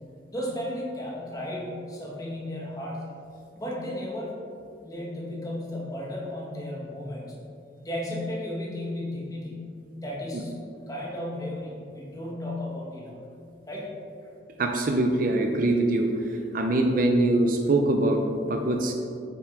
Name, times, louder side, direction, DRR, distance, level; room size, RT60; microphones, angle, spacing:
voice 1, 0.3-3.0 3.5-4.3 4.8-7.3 7.8-9.7 9.9-10.6 10.9-13.2 13.7-13.9, left 1 dB, 20° left, -4 dB, 1.4 m, -34 dB
voice 2, 14.6-16.1 16.5-18.9, right 2 dB, 45° right, 3 dB, 0.5 m, -23 dB
7.7 x 6.8 x 3.4 m, 2.4 s
head